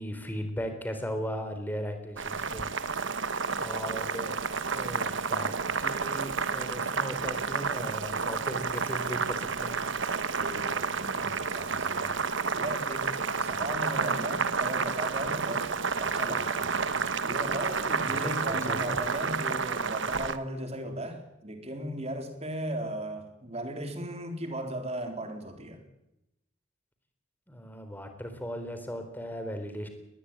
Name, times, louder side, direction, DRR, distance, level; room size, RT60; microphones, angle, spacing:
voice 1, 0.0-2.7 3.6-4.4 4.7-9.8 18.1-18.2 18.5-19.0 27.5-29.9, equal, 10° left, 7 dB, 3.8 m, -37 dB
Boiling, 2.2-20.4, right 5 dB, 60° right, 1.2 m, -30 dB
voice 2, 10.3-12.2 12.6-15.7 16.0-16.7 17.2-25.8, right 1 dB, 30° right, 6 dB, 3.8 m, -37 dB
20.5 x 20.0 x 8.9 m, 0.88 s
head